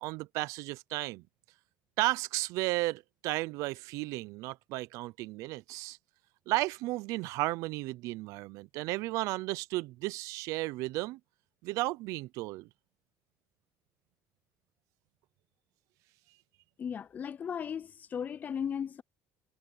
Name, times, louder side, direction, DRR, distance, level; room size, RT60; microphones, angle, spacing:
voice 1, 0.0-1.2 2.0-6.0 6.5-11.2 11.6-12.7, right 20 dB, 80° right, 0.5 m, -34 dB
voice 2, 16.8-19.0, left 7 dB, 30° left, 0.4 m, -36 dB
cardioid pair, 145°, 5 cm